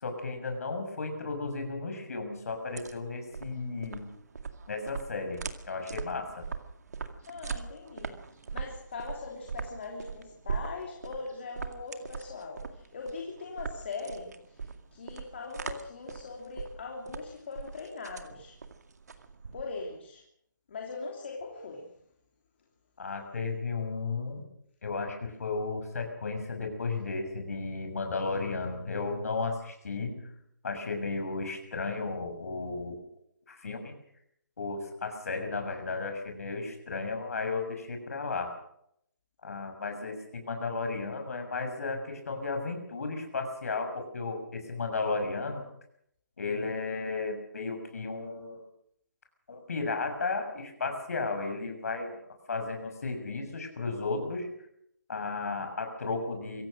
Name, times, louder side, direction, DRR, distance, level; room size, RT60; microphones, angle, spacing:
voice 1, 0.0-4.1 4.7-5.4 5.6-6.4 23.0-24.4 24.8-30.3 30.6-33.0 33.5-33.9 34.6-38.5 39.4-45.6 46.4-48.6 49.5-52.2 52.5-54.5 55.1-56.6, left 3 dB, 50° left, 5 dB, 6.5 m, -34 dB
sound 1, 2.5-20.0, right 5 dB, 60° right, 2.1 m, -41 dB
voice 2, 7.2-8.2 8.5-18.6 19.5-20.2 20.7-21.9, left 4 dB, 35° left, 0 dB, 3.1 m, -41 dB
24.5 x 16.5 x 6.4 m, 0.73 s
hypercardioid pair, 180°, 10 cm